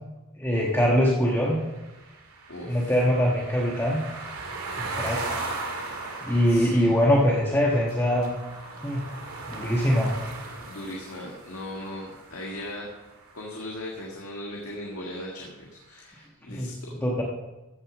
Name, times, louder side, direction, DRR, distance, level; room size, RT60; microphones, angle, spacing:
voice 1, 0.4-1.6 2.7-4.0 4.8-5.3 6.2-8.3 8.8-9.0 9.5-10.2 16.5-16.7 17.0-17.2, equal, 10° left, -3 dB, 1.3 m, -23 dB
sound 1, 1.4-13.4, right 3 dB, 80° right, 2.1 m, -38 dB
voice 2, 2.5-2.9 6.5-6.9 10.6-12.9 13.3-17.0, left 1 dB, 80° left, -2 dB, 1.9 m, -38 dB
14.5 x 6.7 x 6.1 m, 1.1 s
head